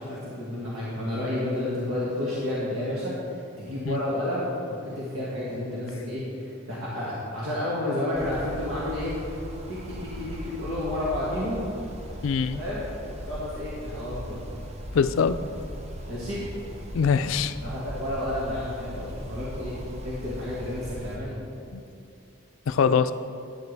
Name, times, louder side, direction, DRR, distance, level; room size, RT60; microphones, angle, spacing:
voice 1, 0.0-9.1 9.7-11.7 12.5-14.4 16.1-16.4 17.6-19.7 20.0-21.4, left 1 dB, 80° right, -8 dB, 1.9 m, -31 dB
sound 1, 8.1-21.2, equal, 30° right, 0.8 m, -38 dB
voice 2, 12.2-12.6 14.9-15.4 16.9-17.6 21.7-21.8 22.7-23.1, left 6 dB, 70° left, 12 dB, 0.4 m, -23 dB
12.0 x 9.2 x 3.5 m, 2.6 s
head